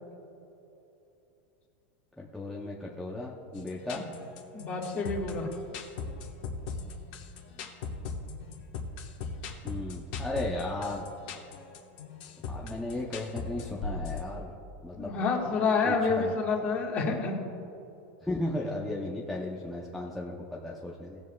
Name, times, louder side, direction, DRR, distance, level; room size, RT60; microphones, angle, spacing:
voice 1, 2.2-4.0 9.6-11.1 12.5-14.5 14.8-15.1 15.8-16.3 18.2-21.2, left 2 dB, ahead, -5 dB, 0.6 m, -35 dB
sound 1, 3.6-14.2, left 4 dB, 45° left, 1.2 m, -38 dB
voice 2, 4.5-5.5 15.0-17.3, left 4 dB, 25° left, 0 dB, 1.4 m, -28 dB
18.0 x 7.2 x 2.3 m, 2.9 s
supercardioid pair, 175°, 6 cm